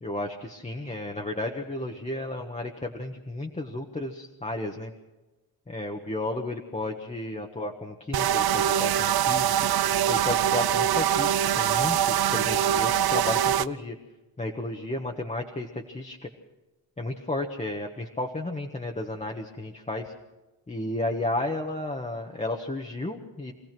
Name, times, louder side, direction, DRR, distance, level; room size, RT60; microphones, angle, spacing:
voice 1, 0.0-4.9 5.7-9.5 10.1-13.9 14.4-16.2 17.0-20.1 20.7-23.5, left 2 dB, 20° left, 1 dB, 1.4 m, -33 dB
sound 1, 8.1-13.7, right 10 dB, 80° right, 0.7 m, -23 dB
25.0 x 17.0 x 6.1 m, 1.1 s
wide cardioid pair, 155°, 37 cm